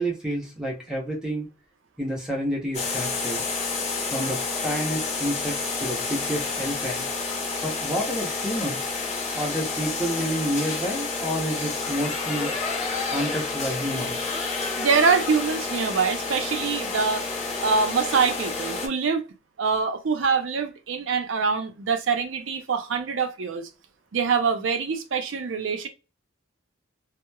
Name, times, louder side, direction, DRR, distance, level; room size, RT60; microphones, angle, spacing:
voice 1, 0.0-1.5 2.0-3.4 4.1-7.1 7.6-8.9 9.3-12.5 13.1-14.3, equal, 5° right, 0.7 m, -29 dB
sound 1, 2.7-18.9, left 4 dB, 35° left, 0.6 m, -29 dB
voice 2, 14.8-17.2 17.6-19.2 19.6-23.7 24.1-25.9, right 5 dB, 75° right, 0.5 m, -24 dB
2.9 x 2.0 x 2.2 m
head